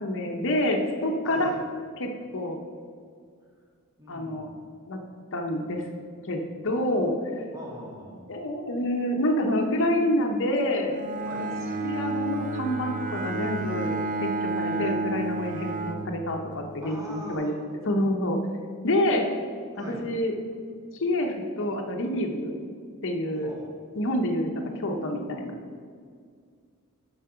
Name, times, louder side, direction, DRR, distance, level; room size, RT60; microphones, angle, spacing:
voice 1, 0.0-1.5 2.0-2.6 4.1-4.5 4.9-5.0 5.3-5.9 6.2-7.4 8.3-11.0 11.3-11.5 11.8-17.5 17.9-18.4 18.8-19.3 19.9-20.3 20.9-22.6 23.0-23.5 23.9-25.6, left 1 dB, 60° left, 3 dB, 0.8 m, -27 dB
voice 2, 1.2-1.6 4.0-4.5 7.5-8.3 11.2-11.5 16.8-17.5 19.7-20.0 23.4-23.7, equal, 15° right, -4 dB, 1.9 m, -40 dB
Bowed string instrument, 10.9-16.7, right 2 dB, 40° right, 0.5 m, -31 dB
7.4 x 5.7 x 5.7 m, 2.1 s
head